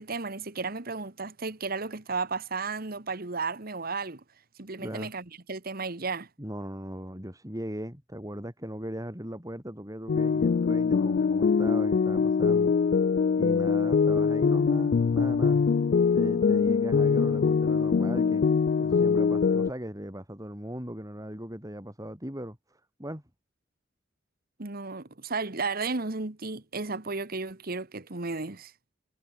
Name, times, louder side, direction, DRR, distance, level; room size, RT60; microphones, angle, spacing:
voice 1, 0.0-4.2 4.6-6.3 24.6-28.7, right 4 dB, 50° right, 1.6 m, -33 dB
voice 2, 4.8-5.1 6.4-12.7 13.3-15.6 16.1-18.4 18.8-23.2, equal, 20° right, 6.4 m, -38 dB
sound 1, 10.1-19.7, left 5 dB, 50° left, 0.3 m, -23 dB
head